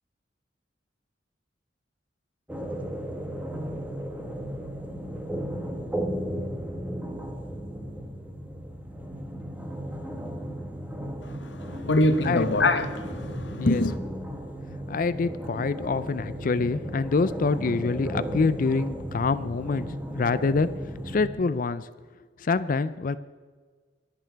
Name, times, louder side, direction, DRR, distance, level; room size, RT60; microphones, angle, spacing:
sound 1, 2.5-21.3, equal, 10° right, 1.3 m, -35 dB
voice 1, 11.2-14.0, left 2 dB, 80° left, 1.1 m, -24 dB
voice 2, 14.9-19.9 20.1-20.7 21.1-21.9 22.4-23.2, left 4 dB, 50° left, 0.4 m, -26 dB
23.5 x 8.8 x 4.6 m
head